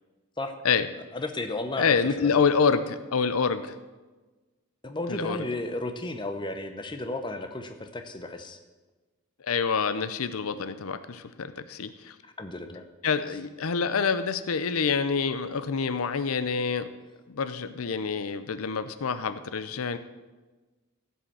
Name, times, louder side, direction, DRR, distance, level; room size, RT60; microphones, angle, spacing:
voice 1, 1.1-2.5 4.8-8.6 12.4-12.8, left 2 dB, 20° left, 7 dB, 0.8 m, -33 dB
voice 2, 1.8-3.7 5.1-5.4 9.4-12.2 13.0-16.9 17.3-20.0, left 5 dB, 80° left, 12 dB, 0.6 m, -27 dB
15.5 x 5.7 x 7.2 m, 1.2 s
head